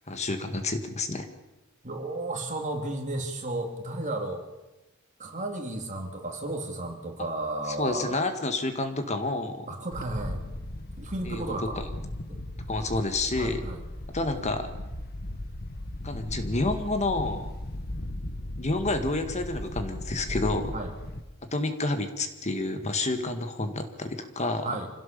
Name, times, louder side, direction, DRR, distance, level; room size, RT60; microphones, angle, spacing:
voice 1, 0.1-1.3 7.8-9.7 11.3-11.5 12.7-13.6 14.1-14.7 16.0-17.5 18.6-20.8 21.5-24.7, left 2 dB, 35° left, 7 dB, 1.8 m, -29 dB
voice 2, 1.8-4.5 5.2-8.2 9.7-10.4 11.0-11.8 12.3-12.4 12.8-12.9 13.4-13.8 20.7-20.9 24.6-24.9, right 2 dB, 40° right, 3 dB, 3.1 m, -33 dB
Wind, 9.9-21.2, left 1 dB, 50° left, 1.5 m, -37 dB
26.0 x 17.0 x 7.0 m, 1.0 s
head